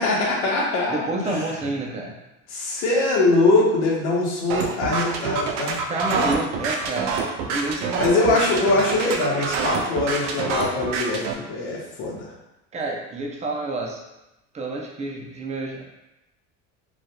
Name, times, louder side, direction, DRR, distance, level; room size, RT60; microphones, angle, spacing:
voice 1, 0.0-1.5 2.5-5.8 8.0-12.3, left 2 dB, 80° left, -3 dB, 0.9 m, -22 dB
voice 2, 0.9-2.1 5.9-7.2 7.4-8.4 12.7-14.0 14.5-15.8, right 2 dB, 20° right, -1 dB, 0.5 m, -28 dB
sound 1, 4.5-11.3, right 4 dB, 80° right, 0.5 m, -27 dB
2.6 x 2.3 x 2.2 m, 0.94 s
supercardioid pair, 85°, 36 cm